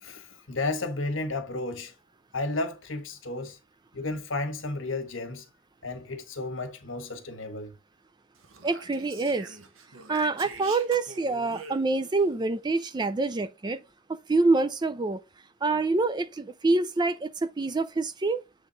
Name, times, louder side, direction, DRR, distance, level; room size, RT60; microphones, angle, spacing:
voice 1, 0.0-1.9 2.3-3.6 3.9-5.4 5.8-7.7, left 2 dB, 70° left, 1.3 m, -33 dB
Speech, 8.3-12.2, right 4 dB, 85° right, 1.1 m, -45 dB
voice 2, 8.6-9.6 10.1-13.8 14.1-15.2 15.6-18.4, right 3 dB, 20° right, 0.4 m, -26 dB
7.7 x 3.5 x 3.9 m
head